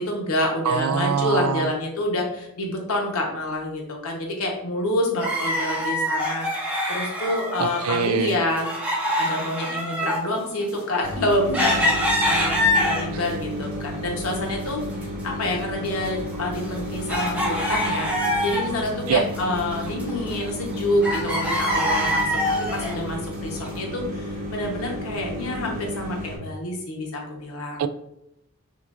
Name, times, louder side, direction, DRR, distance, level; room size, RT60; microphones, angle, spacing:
voice 1, 0.0-8.7 9.2-14.8 15.2-18.1 18.4-22.4 22.7-27.8, left 1 dB, 70° left, 0 dB, 1.0 m, -27 dB
voice 2, 0.6-1.7 7.6-8.4 19.1-19.2 27.8-27.9, right 7 dB, 85° right, 12 dB, 0.3 m, -23 dB
sound 1, 5.2-8.0 8.2-13.3 13.8-14.7 14.9-15.0 15.7-18.9 19.2-20.7 21.0-23.0 23.6-23.7, left 1 dB, 5° right, 0.7 m, -25 dB
sound 2, 11.0-26.4, equal, 35° right, 0.9 m, -33 dB
5.8 x 2.5 x 2.5 m, 0.81 s
head